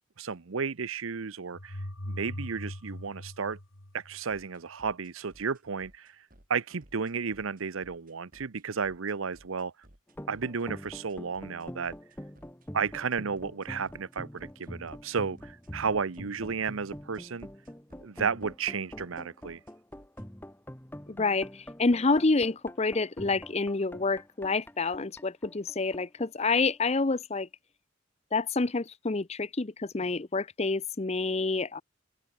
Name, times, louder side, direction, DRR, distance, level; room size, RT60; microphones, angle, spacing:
voice 1, 0.2-3.6 3.9-9.7 10.3-11.9 12.7-17.5 18.0-19.6, right 5 dB, 75° right, 0.8 m, -33 dB
sound 1, 1.5-4.4, left 1 dB, 80° left, 3.8 m, -40 dB
sound 2, 4.3-20.2, right 1 dB, 40° right, 6.9 m, -58 dB
sound 3, 10.1-27.0, equal, 10° left, 1.4 m, -45 dB
voice 2, 21.1-27.5 28.3-31.8, left 3 dB, 30° left, 0.7 m, -28 dB
open air
head